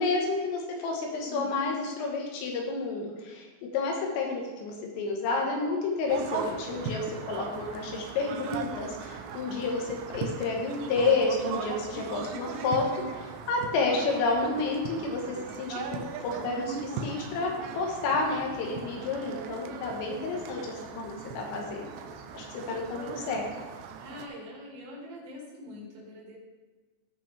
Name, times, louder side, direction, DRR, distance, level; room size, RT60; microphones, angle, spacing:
voice 1, 0.0-3.5 3.7-12.9 13.1-21.9 22.3-23.5, left 3 dB, 80° left, 0 dB, 3.9 m, -30 dB
voice 2, 1.2-1.7 24.0-26.4, left 1 dB, 70° right, -3 dB, 4.7 m, -43 dB
Fussball Soccer Teens Atmo Away, 6.1-24.3, right 5 dB, 85° right, 2.4 m, -39 dB
16.0 x 5.6 x 3.5 m, 1.3 s
omnidirectional pair, 5.9 m